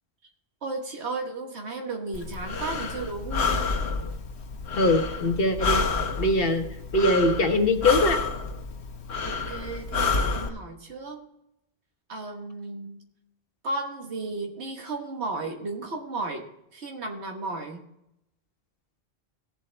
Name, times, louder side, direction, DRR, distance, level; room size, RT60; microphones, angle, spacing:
voice 1, 0.6-3.7 9.2-11.3 12.1-13.0 13.6-16.4 16.7-17.8, right 3 dB, 90° right, 2 dB, 1.6 m, -34 dB
Breathing, 2.1-10.5, left 4 dB, 80° left, 1.4 m, -29 dB
voice 2, 4.8-5.8 6.2-6.6 6.9-8.2, left 1 dB, 60° left, 5 dB, 1.5 m, -22 dB
17.0 x 7.8 x 3.4 m, 0.82 s
omnidirectional pair, 1.1 m